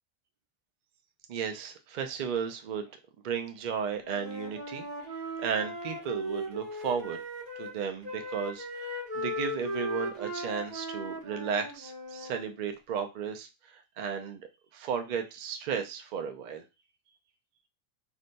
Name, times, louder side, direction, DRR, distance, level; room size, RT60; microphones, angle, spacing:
voice 1, 1.3-2.9 3.2-4.9 5.4-7.2 7.6-16.6, right 7 dB, 80° right, 6 dB, 0.4 m, -34 dB
Wind instrument woodwind instrument, 4.0-7.8 8.0-12.4, equal, 35° right, 0.9 m, -37 dB
2.6 x 2.2 x 3.9 m, 0.27 s
omnidirectional pair, 1.4 m